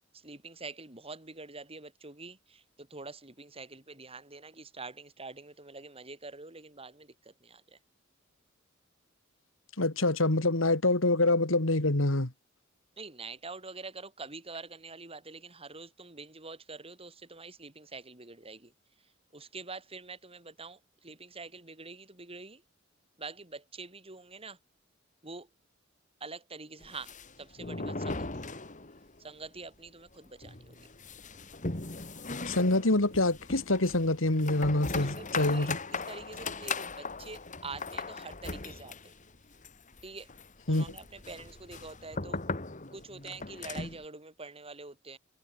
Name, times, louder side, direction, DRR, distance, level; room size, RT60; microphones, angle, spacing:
voice 1, 0.2-7.6 13.0-18.7 19.3-22.6 23.2-24.6 25.2-25.5 26.2-28.3 29.2-30.9 34.9-38.9 40.0-40.3 40.7-42.4 42.9-45.2, right 3 dB, 30° right, 5.4 m, -45 dB
voice 2, 9.8-12.3 32.4-35.8 40.7-41.0, left 2 dB, 85° left, 2.5 m, -26 dB
sound 1, 26.8-29.2 29.4-29.5 29.9-30.0 30.4-44.0, left 3 dB, 40° left, 3.0 m, -39 dB
head